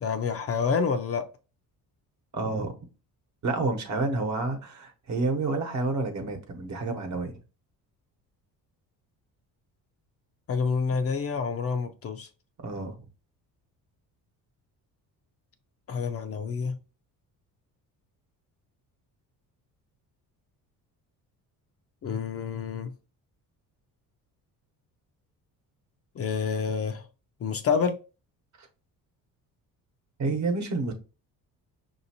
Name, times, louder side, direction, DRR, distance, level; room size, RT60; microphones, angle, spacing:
voice 1, 0.0-1.2 10.5-12.3 15.9-16.8 22.0-22.9 26.2-27.0 27.4-28.0, left 5 dB, 40° left, 0.5 m, -28 dB
voice 2, 2.3-2.7 3.4-7.4 12.6-13.0 28.6-28.7 30.2-30.9, right 3 dB, 50° right, 1.0 m, -29 dB
5.6 x 2.7 x 2.8 m
cardioid pair, 110°, 37 cm